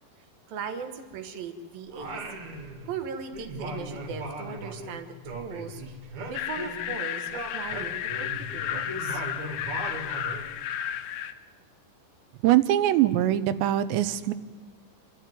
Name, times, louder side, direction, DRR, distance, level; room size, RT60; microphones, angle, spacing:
voice 1, 0.5-2.2 2.8-5.8 6.3-9.2, right 6 dB, 65° right, 8 dB, 2.9 m, -38 dB
Singing, 1.9-3.1 3.3-7.0 7.3-10.5, right 1 dB, 45° right, 3.4 m, -38 dB
sound 1, 6.3-11.3, left 10 dB, 75° left, 2.6 m, -33 dB
voice 2, 12.4-14.3, right 13 dB, 85° right, 13 dB, 3.0 m, -22 dB
28.0 x 12.0 x 9.3 m, 1.5 s
omnidirectional pair, 5.0 m